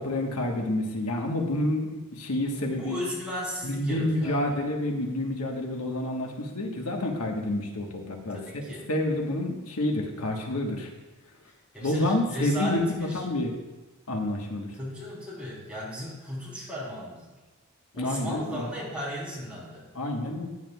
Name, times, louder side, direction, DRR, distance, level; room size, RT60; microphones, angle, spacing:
voice 1, 0.0-3.0 3.6-8.6 8.9-10.9 11.8-12.8 13.1-13.5 14.1-14.7 18.0-18.7 19.9-20.5, left 1 dB, 90° left, 1 dB, 1.3 m, -28 dB
voice 2, 2.7-4.6 8.3-8.9 11.7-13.2 14.8-17.3 17.9-19.9, equal, 5° right, -7 dB, 3.5 m, -36 dB
14.5 x 9.6 x 2.3 m, 1.1 s
head